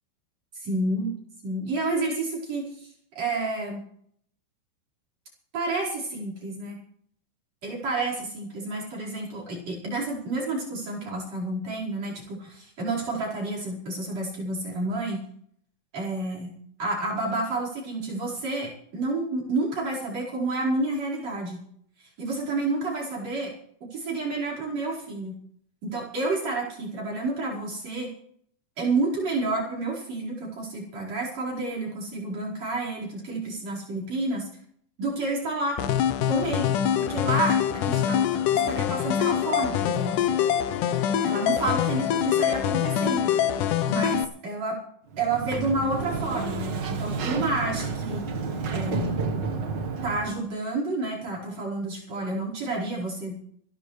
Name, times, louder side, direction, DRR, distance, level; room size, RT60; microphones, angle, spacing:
voice 1, 0.5-1.1 1.4-3.8 5.5-6.8 7.6-15.2 15.9-16.5 16.8-21.6 22.0-23.5 23.9-25.3 25.8-28.1 28.8-34.5 35.0-35.8 36.3-40.2 41.2-43.3 43.9-44.8 45.2-48.2 48.7-49.1 50.0-53.4, right 2 dB, 45° right, -2 dB, 5.9 m, -30 dB
sound 1, 35.8-44.2, left 9 dB, 70° left, 2.1 m, -24 dB
Sliding door, 45.1-50.5, right 4 dB, 75° right, 1.0 m, -30 dB
26.5 x 11.5 x 3.3 m, 0.66 s
omnidirectional pair, 4.3 m